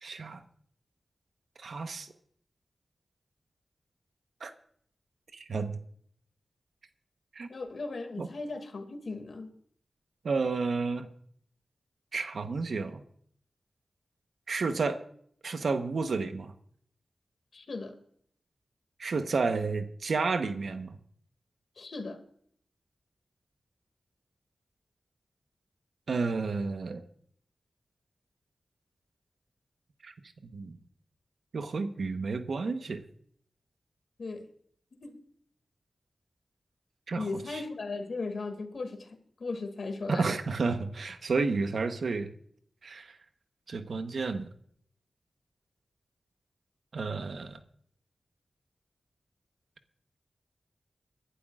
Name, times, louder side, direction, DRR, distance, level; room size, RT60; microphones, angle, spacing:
voice 1, 0.0-0.4 1.6-2.1 4.4-4.5 5.3-5.8 7.3-7.5 8.2-8.3 10.2-11.1 12.1-13.0 14.5-15.0 15.4-16.5 19.0-21.0 26.1-27.0 30.0-30.1 30.5-30.8 31.5-33.0 37.1-37.6 40.1-42.3 42.8-43.2 43.7-44.5 46.9-47.6, right 4 dB, 80° right, 8 dB, 1.1 m, -31 dB
voice 2, 7.5-9.5 17.5-17.9 21.8-22.2 34.2-34.4 35.0-35.1 37.2-39.1 39.4-40.3, left 3 dB, 75° left, 6 dB, 2.2 m, -37 dB
24.5 x 11.5 x 2.5 m, 0.63 s
cardioid pair, 50°, 0 cm